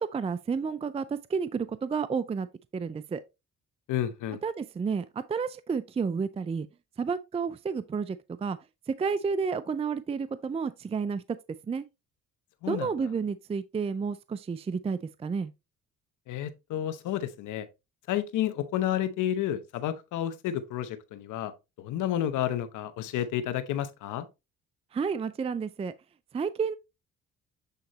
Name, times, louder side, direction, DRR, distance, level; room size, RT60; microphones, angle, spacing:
voice 1, 0.0-2.5 2.7-3.2 4.4-6.7 7.0-8.6 8.9-11.2 11.7-11.9 12.7-15.5 24.9-25.9 26.3-26.8, right 5 dB, 20° right, 0.4 m, -31 dB
voice 2, 3.9-4.4 12.6-12.9 16.3-17.7 18.1-21.5 21.8-24.3, left 11 dB, 85° left, 0.9 m, -31 dB
8.1 x 3.8 x 3.1 m
cardioid pair, 90°, 30 cm